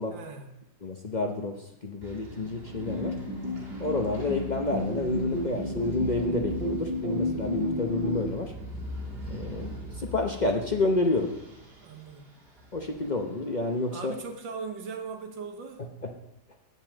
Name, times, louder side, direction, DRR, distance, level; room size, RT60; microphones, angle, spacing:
voice 1, 0.1-0.6 11.8-12.3 13.9-15.9, right 5 dB, 80° right, 5 dB, 2.0 m, -40 dB
voice 2, 0.8-1.6 1.8-3.2 3.8-8.5 9.3-11.3 12.7-14.1, left 2 dB, 60° left, 3 dB, 0.4 m, -29 dB
sound 1, 2.0-14.3, equal, 30° right, 2.3 m, -42 dB
sound 2, 2.7-8.2, left 1 dB, 60° right, 3.3 m, -32 dB
8.0 x 7.4 x 7.4 m, 0.90 s
omnidirectional pair, 2.0 m